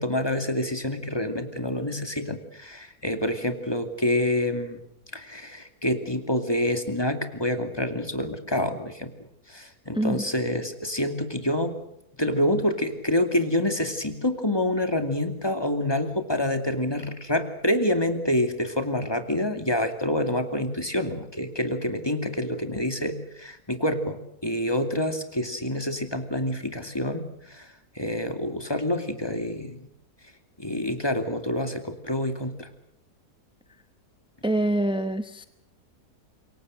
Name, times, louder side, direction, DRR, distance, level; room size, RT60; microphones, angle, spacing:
voice 1, 0.0-4.8 5.1-9.1 9.5-11.7 12.2-27.7 27.9-29.8 30.6-32.7, left 1 dB, 15° left, 7 dB, 2.5 m, -27 dB
voice 2, 9.9-10.2 34.4-35.4, right 1 dB, 5° right, 10 dB, 0.6 m, -25 dB
27.0 x 23.0 x 6.6 m, 0.76 s
omnidirectional pair, 1.7 m